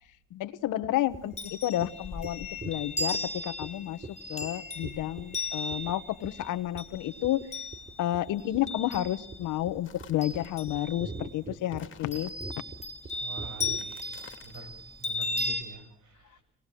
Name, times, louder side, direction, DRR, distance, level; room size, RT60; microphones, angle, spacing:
voice 1, 0.3-7.4 8.0-12.3, left 13 dB, 85° left, 12 dB, 1.3 m, -31 dB
sound 1, 0.8-1.4 1.8-1.9 2.2-2.3 2.6-3.2 3.6-3.7 4.0-4.1 4.4-4.5 4.8-5.4 5.7-5.9 6.2-6.5 6.8-7.0 7.2-7.5 7.7-13.8, right 3 dB, 30° right, 3.6 m, -41 dB
Chime, 1.1-9.6 9.9-11.3 12.1-15.6, left 2 dB, 20° left, 3.0 m, -36 dB
sound 2, 9.8-10.5 11.7-12.7 13.7-14.7, left 7 dB, 40° left, 2.6 m, -52 dB
voice 2, 13.1-16.4, right 3 dB, 85° right, 6 dB, 6.7 m, -47 dB
27.5 x 19.0 x 7.7 m, 0.62 s
cardioid pair, 90°, 30 cm